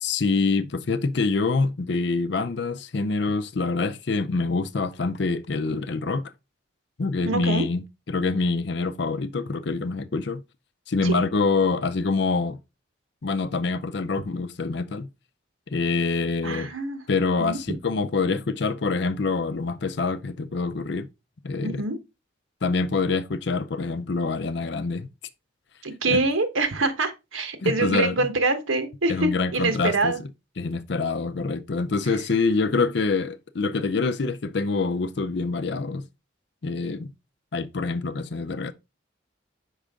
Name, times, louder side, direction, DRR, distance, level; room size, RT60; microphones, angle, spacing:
voice 1, 0.0-6.3 7.0-10.4 10.9-12.6 13.2-15.1 15.7-16.7 17.1-21.1 21.4-21.8 22.6-25.1 26.1-26.2 27.6-28.2 29.1-30.1 30.6-36.1 36.6-37.1 37.5-38.7, left 4 dB, 60° left, 0.5 m, -25 dB
voice 2, 7.2-7.6 11.0-11.2 16.4-17.0 17.4-17.6 21.6-22.0 25.8-30.2, right 3 dB, 90° right, 1.2 m, -25 dB
5.5 x 5.1 x 3.6 m
head